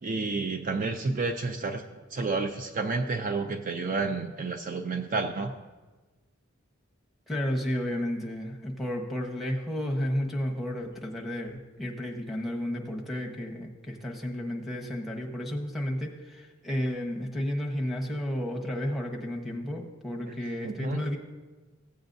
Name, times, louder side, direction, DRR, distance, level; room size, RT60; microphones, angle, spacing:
voice 1, 0.0-5.5 20.3-20.4 20.6-21.0, right 3 dB, 40° right, 6 dB, 0.4 m, -30 dB
voice 2, 7.3-21.2, equal, ahead, -2 dB, 1.0 m, -32 dB
15.5 x 8.0 x 2.6 m, 1.3 s
head